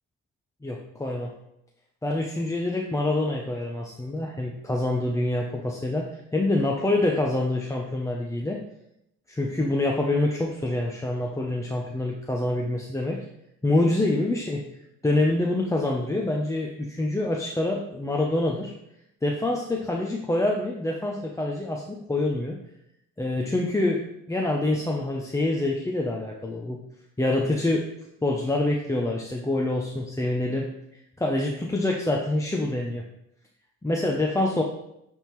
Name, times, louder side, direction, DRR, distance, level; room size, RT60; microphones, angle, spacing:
voice 1, 0.6-1.3 2.0-8.6 9.3-13.2 13.6-14.6 15.0-18.7 19.2-22.6 23.2-24.0 24.3-26.8 27.2-27.9 28.2-30.7 31.2-33.0 33.8-34.6, left 2 dB, 10° left, -1 dB, 0.6 m, -26 dB
9.9 x 3.6 x 3.1 m, 0.83 s
cardioid pair, 90°, 30 cm